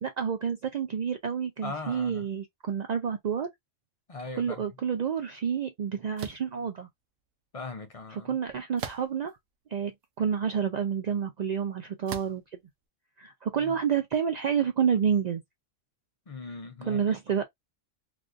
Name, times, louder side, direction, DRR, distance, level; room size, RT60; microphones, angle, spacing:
voice 1, 0.0-3.5 4.4-6.9 8.1-9.3 9.7-9.9 10.2-12.4 13.2-15.4 16.8-17.4, right 7 dB, 70° right, 0.4 m, -29 dB
voice 2, 1.6-2.3 4.1-4.6 7.5-8.3 16.3-17.0, left 3 dB, 45° left, 0.5 m, -39 dB
sound 1, 6.2-6.5 8.8-9.3 10.0-10.1 12.1-12.5, right 8 dB, 90° right, 1.0 m, -39 dB
3.4 x 2.5 x 2.5 m
omnidirectional pair, 1.3 m